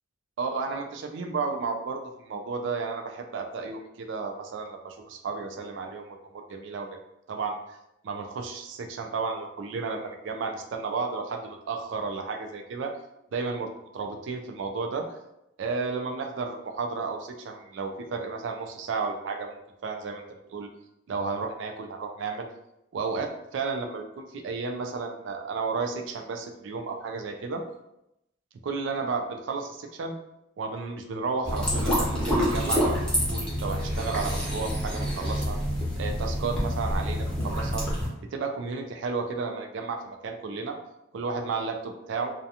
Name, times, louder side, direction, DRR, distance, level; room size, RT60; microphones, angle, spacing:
voice 1, 0.4-7.0 7.3-7.8 8.0-12.9 13.3-15.2 15.6-20.2 20.5-20.7 21.1-22.5 22.9-27.6 28.6-30.1 30.6-33.0 33.3-35.6 36.0-37.8 38.3-40.8 41.1-42.3, right 4 dB, 70° right, 4 dB, 0.3 m, -33 dB
sound 1, 31.4-38.1, equal, 5° left, 0.7 m, -27 dB
2.4 x 2.2 x 2.7 m, 0.85 s
head